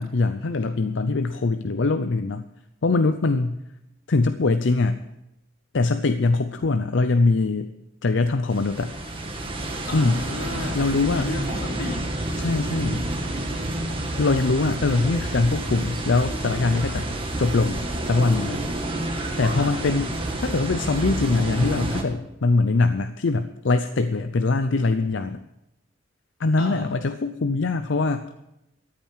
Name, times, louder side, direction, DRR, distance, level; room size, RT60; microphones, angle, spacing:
voice 1, 0.0-2.4 2.8-3.6 4.1-5.0 5.7-7.7 8.0-8.9 9.9-10.2 10.7-11.3 12.4-13.1 14.2-17.1 17.4-18.6 19.4-25.4 26.4-28.2, left 3 dB, 65° left, 9 dB, 0.6 m, -22 dB
sound 1, 8.5-22.0, right 1 dB, 25° right, 1.7 m, -29 dB
voice 2, 9.9-10.9 11.1-12.0 19.6-19.8 26.6-26.8, left 2 dB, 85° left, -1 dB, 3.9 m, -32 dB
13.5 x 8.8 x 7.3 m, 0.88 s
head